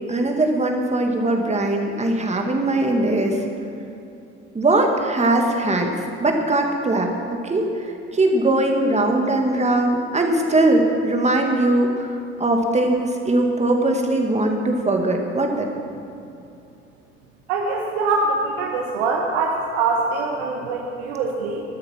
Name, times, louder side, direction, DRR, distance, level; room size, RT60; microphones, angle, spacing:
voice 1, 0.1-3.4 4.5-5.9 6.2-7.1 7.4-7.7 8.1-12.1 12.4-15.7, right 2 dB, 20° right, 2 dB, 2.1 m, -20 dB
voice 2, 17.5-21.6, right 3 dB, 65° right, -1 dB, 1.5 m, -23 dB
16.5 x 12.0 x 5.9 m, 2.8 s
figure-of-eight pair, 60°, 36 cm